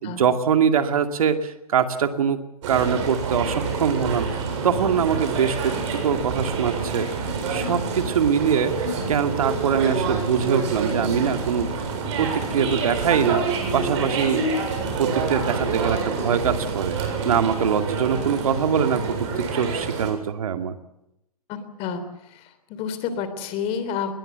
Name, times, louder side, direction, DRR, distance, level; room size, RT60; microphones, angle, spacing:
voice 1, 0.0-2.4 2.7-7.1 7.5-11.7 12.2-14.4 15.0-20.8, right 7 dB, 65° right, 8 dB, 2.4 m, -23 dB
sound 1, 2.6-20.1, right 4 dB, 50° right, 7.5 m, -27 dB
voice 2, 21.5-24.1, left 7 dB, 30° left, 11 dB, 3.4 m, -30 dB
21.0 x 20.5 x 8.2 m, 0.85 s
hypercardioid pair, 125°, 19 cm